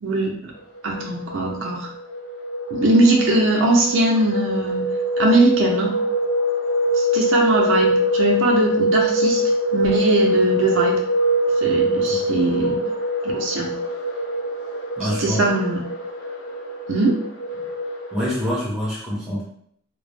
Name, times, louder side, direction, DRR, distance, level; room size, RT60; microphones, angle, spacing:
voice 1, 0.0-0.5 0.8-1.9 2.7-4.9 5.2-5.9 7.0-9.4 9.7-11.0 11.6-12.8 13.2-13.7 15.0-15.8 16.9-17.2, right 2 dB, 75° right, -1 dB, 0.5 m, -20 dB
sound 1, 0.8-18.5, equal, 85° left, 0.6 m, -23 dB
voice 2, 11.8-12.3 15.0-15.4 18.1-19.4, equal, ahead, -8 dB, 0.8 m, -26 dB
2.1 x 2.0 x 3.2 m, 0.67 s
head